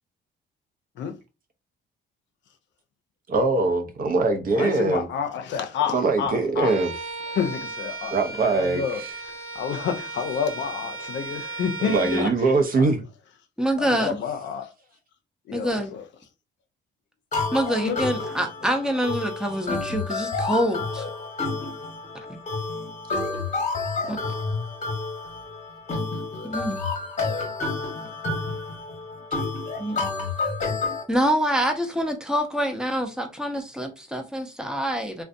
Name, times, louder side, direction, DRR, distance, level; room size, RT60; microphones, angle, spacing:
voice 1, 3.3-5.1 5.9-6.9 8.1-8.8 11.9-13.0, right 3 dB, 45° right, 0.6 m, -22 dB
voice 2, 4.5-6.7 7.3-13.0 13.8-14.7 15.5-16.0 17.8-18.0, left 7 dB, 70° left, 0.5 m, -30 dB
Bowed string instrument, 6.6-12.3, right 3 dB, 80° right, 1.0 m, -35 dB
voice 3, 13.6-14.2 15.5-15.9 17.5-21.1 22.3-22.4 24.1-24.2 26.4-26.8 29.8-30.0 31.1-35.2, equal, 5° right, 0.6 m, -26 dB
sound 1, 17.3-31.0, left 3 dB, 35° left, 1.0 m, -30 dB
2.5 x 2.2 x 2.5 m
cardioid pair, 90°, 20 cm